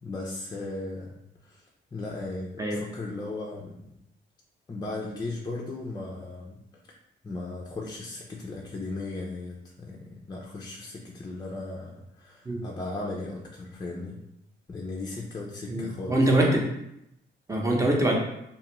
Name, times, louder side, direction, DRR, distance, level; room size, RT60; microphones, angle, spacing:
voice 1, 0.0-1.6 1.9-3.7 4.7-6.6 7.2-14.2 14.7-16.2, left 2 dB, 20° left, -2 dB, 0.4 m, -36 dB
voice 2, 15.7-16.6 17.5-18.2, right 1 dB, 15° right, -1 dB, 0.7 m, -23 dB
2.6 x 2.4 x 3.0 m, 0.80 s
cardioid pair, 90°, 20 cm